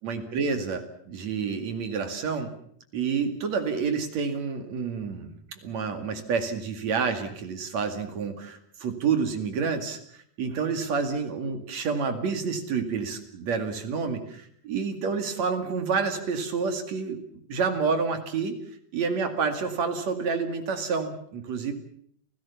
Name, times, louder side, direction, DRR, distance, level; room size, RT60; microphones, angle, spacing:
voice 1, 0.0-2.5 2.9-17.2 17.5-18.6 18.9-21.7, right 5 dB, 45° right, 7 dB, 2.9 m, -29 dB
29.5 x 16.0 x 7.1 m, 0.64 s
omnidirectional pair, 4.9 m